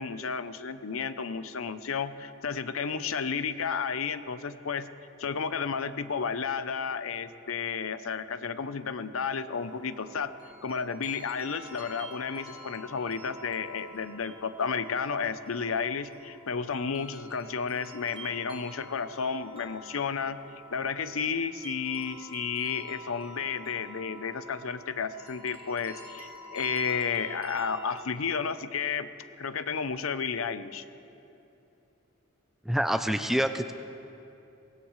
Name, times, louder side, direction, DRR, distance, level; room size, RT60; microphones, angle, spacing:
voice 1, 0.0-4.9 5.2-10.3 10.6-20.4 20.7-29.1 29.4-30.8, left 6 dB, 85° left, 12 dB, 0.7 m, -32 dB
sound 1, 9.5-28.0, equal, 25° right, 1.7 m, -48 dB
voice 2, 32.7-33.7, equal, ahead, 8 dB, 0.5 m, -26 dB
23.5 x 19.0 x 3.2 m, 2.8 s
head